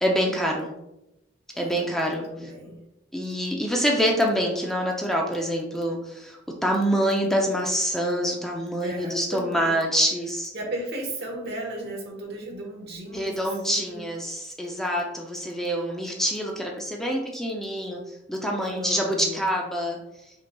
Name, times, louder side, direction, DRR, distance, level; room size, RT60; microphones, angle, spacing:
voice 1, 0.0-0.7 1.6-2.5 3.1-10.5 13.1-18.0 18.3-20.0, equal, ahead, -1 dB, 0.4 m, -26 dB
voice 2, 1.5-1.9 2.3-2.8 8.8-9.8 10.5-14.1 18.6-19.4, right 1 dB, 60° right, -1 dB, 1.2 m, -35 dB
5.2 x 3.9 x 2.3 m, 0.90 s
head